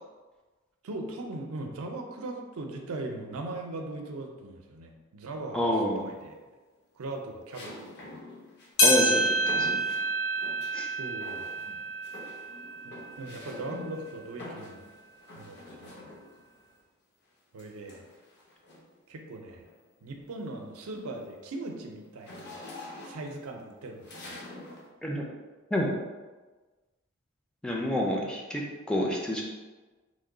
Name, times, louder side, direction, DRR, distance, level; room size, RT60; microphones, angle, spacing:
voice 1, 0.8-5.6 6.0-6.4 6.9-8.2 11.0-11.9 12.9-14.9 15.4-16.2 17.5-18.1 19.1-19.7 20.0-22.6 23.0-24.4, right 2 dB, 85° right, 3 dB, 0.5 m, -39 dB
voice 2, 5.5-6.0 8.8-9.8 10.7-10.9 25.0-25.3 25.7-25.9 27.6-28.6 28.9-29.4, left 1 dB, 5° left, -2 dB, 0.3 m, -28 dB
sound 1, 5.6-6.2 7.5-10.8 11.2-11.8 12.0-16.5 17.6-19.0 19.5-19.7 20.1-24.9, left 2 dB, 55° left, 0.6 m, -46 dB
sound 2, 8.8-13.4 13.9-14.0 14.8-14.9 15.9-16.0, right 1 dB, 75° left, 0.8 m, -28 dB
3.1 x 2.2 x 3.7 m, 1.3 s
head